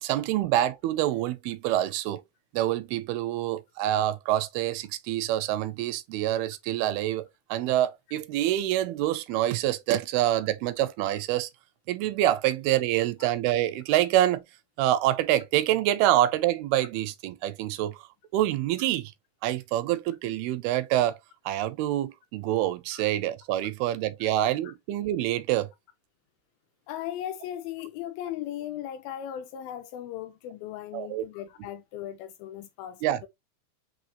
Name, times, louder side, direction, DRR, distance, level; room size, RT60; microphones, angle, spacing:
voice 1, 0.0-2.2 2.5-7.3 7.5-11.5 11.9-14.4 14.8-18.0 18.3-19.1 19.4-21.2 21.5-25.7 30.9-31.2 33.0-33.2, right 13 dB, 85° right, 2.4 m, -26 dB
voice 2, 26.9-33.3, left 11 dB, 85° left, 2.1 m, -37 dB
5.7 x 3.0 x 2.8 m
omnidirectional pair, 4.5 m